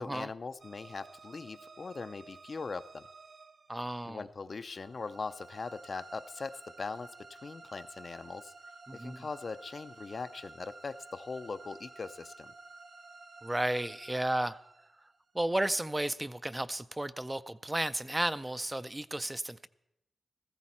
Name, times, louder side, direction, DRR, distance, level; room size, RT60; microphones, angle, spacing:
voice 1, 0.0-3.1 4.0-8.5 8.9-12.5, left 4 dB, 50° left, 0.5 m, -41 dB
sound 1, 0.6-15.7, right 3 dB, 55° right, 0.9 m, -53 dB
voice 2, 3.7-4.3 8.9-9.2 13.4-14.6 15.3-19.7, right 1 dB, 15° right, 0.4 m, -33 dB
15.0 x 14.5 x 4.3 m
cardioid pair, 80°, 0 cm